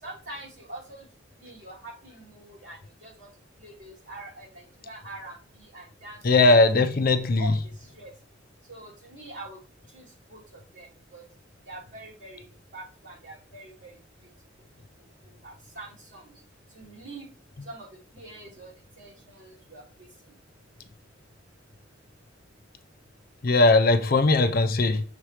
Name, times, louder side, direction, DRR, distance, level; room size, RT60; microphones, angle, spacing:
voice 1, 0.0-1.0 1.4-3.3 3.6-6.2 6.7-6.8 7.1-7.5 7.8-8.1 8.7-9.6 9.9-10.0 10.3-11.2 11.7-12.4 12.7-14.0 14.2-14.3 15.4-16.3 16.7-17.3 17.6-17.9 18.1-19.8, right 2 dB, 65° right, 3.2 m, -44 dB
voice 2, 6.2-7.5 23.4-25.0, left 2 dB, 45° left, 0.5 m, -19 dB
6.6 x 3.1 x 4.8 m
head